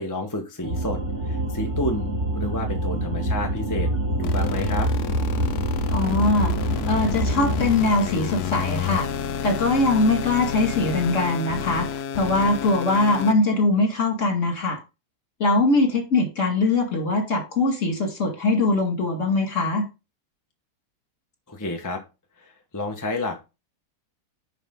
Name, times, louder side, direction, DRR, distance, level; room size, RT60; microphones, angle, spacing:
voice 1, 0.0-3.9 4.2-4.9 21.5-22.0 22.4-23.4, left 2 dB, 15° left, 1.0 m, -30 dB
sound 1, 0.6-7.7, right 1 dB, 45° right, 2.8 m, -26 dB
sound 2, 4.2-13.3, left 8 dB, 80° left, 1.2 m, -30 dB
voice 2, 5.9-6.5 6.9-9.1 9.4-14.8 15.4-19.9, left 2 dB, 50° left, 2.5 m, -22 dB
9.9 x 5.0 x 3.7 m
omnidirectional pair, 1.7 m